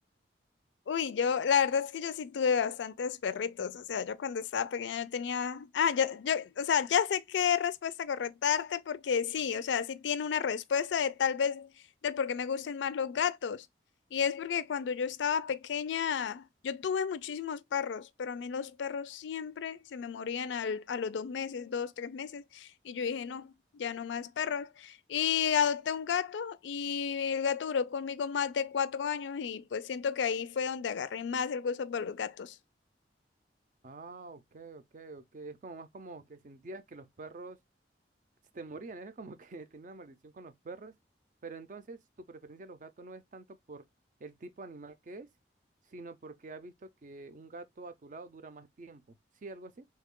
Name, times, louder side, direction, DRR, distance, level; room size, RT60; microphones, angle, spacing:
voice 1, 0.9-11.7 12.0-13.7 14.1-32.6, left 7 dB, 90° left, 0.4 m, -32 dB
voice 2, 33.8-37.6 38.5-41.0 41.4-43.8 44.2-45.3 45.9-49.9, right 3 dB, 45° right, 0.4 m, -47 dB
3.2 x 2.3 x 3.5 m
head